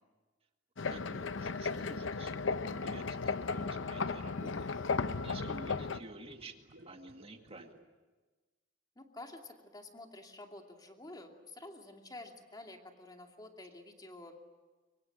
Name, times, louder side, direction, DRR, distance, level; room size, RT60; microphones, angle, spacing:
sound 1, 0.8-6.0, left 4 dB, 75° left, 0.7 m, -35 dB
voice 1, 0.9-4.7 5.2-7.7, right 2 dB, 30° right, 5 dB, 2.0 m, -51 dB
sound 2, 2.7-7.8, right 1 dB, 80° right, 3.5 m, -57 dB
voice 2, 9.0-14.3, left 2 dB, 20° left, 3 dB, 2.6 m, -50 dB
24.5 x 24.0 x 8.9 m, 1.3 s
head